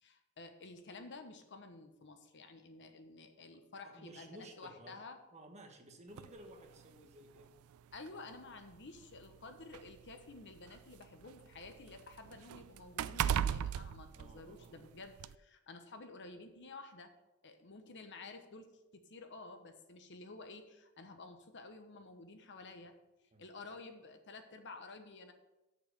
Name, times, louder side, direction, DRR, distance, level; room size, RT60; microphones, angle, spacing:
voice 1, 0.0-5.2 7.9-17.1 17.4-18.7 18.9-22.9 23.4-25.3, left 3 dB, 55° left, 7 dB, 1.0 m, -52 dB
voice 2, 3.8-5.0 5.3-7.5 14.1-14.8 23.3-23.4, right 1 dB, 30° right, 3 dB, 1.3 m, -55 dB
sound 1, 6.2-6.3 7.4-7.5 7.9-8.1 9.0-11.0 11.4-14.8 15.2-15.3, right 9 dB, 75° right, 0.3 m, -37 dB
7.3 x 6.7 x 6.7 m, 0.98 s
head